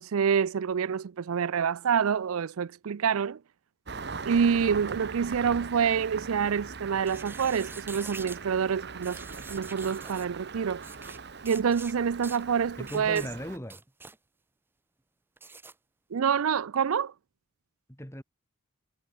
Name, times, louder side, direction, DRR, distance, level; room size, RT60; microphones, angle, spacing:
voice 1, 0.0-3.4 4.2-9.2 9.5-10.8 11.4-13.2 16.1-17.1, right 7 dB, 85° right, 0.4 m, -27 dB
Engine starting, 3.9-13.6, right 4 dB, 50° right, 1.0 m, -41 dB
sound 1, 7.0-8.4 9.0-10.3 10.8-11.2 11.5-11.9 12.2-12.4 12.8-13.3 13.6-14.2 15.4-15.7, right 4 dB, 10° right, 0.5 m, -45 dB
voice 2, 12.8-13.8 17.9-18.2, equal, 10° left, 5.5 m, -38 dB
head